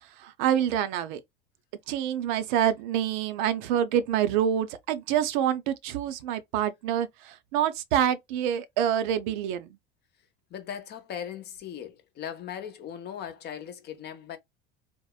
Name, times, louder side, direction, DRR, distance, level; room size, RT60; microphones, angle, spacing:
voice 1, 0.2-1.2 1.9-9.7, right 10 dB, 55° right, 0.5 m, -26 dB
voice 2, 10.5-14.4, left 9 dB, 35° left, 0.7 m, -38 dB
3.6 x 2.0 x 2.3 m
figure-of-eight pair, 70°, 29 cm